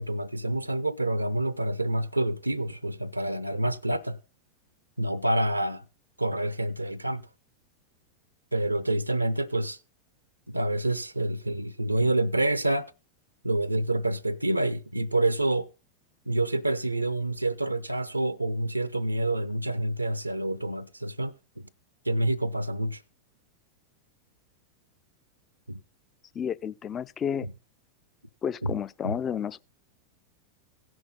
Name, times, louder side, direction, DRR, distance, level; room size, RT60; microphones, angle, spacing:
voice 1, 0.0-4.2 5.0-5.8 6.2-7.2 8.5-9.8 10.5-12.9 13.4-15.7 16.3-21.7 22.1-23.0 25.7-25.8 28.6-28.8 29.0-29.1, right 1 dB, 85° right, 0.5 m, -27 dB
voice 2, 26.3-27.5 28.4-29.6, left 8 dB, 25° left, 0.4 m, -31 dB
16.5 x 6.2 x 3.8 m
figure-of-eight pair, 90°, 0 cm